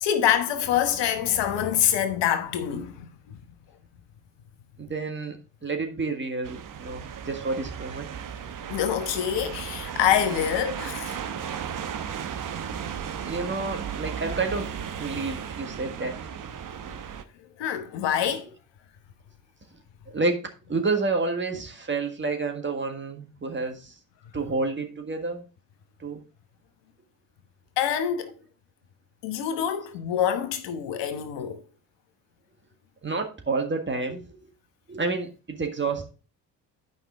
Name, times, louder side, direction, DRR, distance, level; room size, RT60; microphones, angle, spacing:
voice 1, 0.0-3.4 8.7-11.2 17.6-18.5 27.8-28.3 29.2-31.6, left 9 dB, 60° left, 1.1 m, -26 dB
voice 2, 4.8-5.4 5.6-8.1 13.2-16.2 20.1-20.4 20.7-23.9 24.3-25.4 26.0-26.2 33.0-34.4 34.9-36.1, right 3 dB, 25° right, 1.7 m, -29 dB
sound 1, 6.4-17.2, right 8 dB, 40° right, 0.9 m, -35 dB
9.1 x 5.4 x 3.6 m
hypercardioid pair, 45°, 48 cm